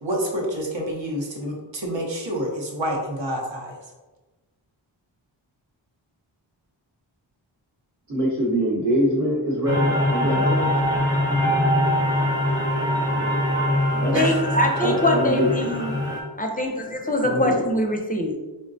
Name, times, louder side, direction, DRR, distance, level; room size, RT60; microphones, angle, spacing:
voice 1, 0.0-3.8 14.1-14.4, equal, 70° right, -1 dB, 0.9 m, -28 dB
voice 2, 8.1-10.7 14.0-14.3 14.8-15.7 17.2-17.5, equal, 40° right, -6 dB, 0.9 m, -23 dB
sound 1, 9.7-16.2, left 1 dB, 10° right, 0.7 m, -23 dB
voice 3, 14.1-15.9 16.4-18.4, left 1 dB, 20° left, 2 dB, 0.4 m, -23 dB
3.7 x 2.1 x 2.6 m, 1.1 s
wide cardioid pair, 45°, 47 cm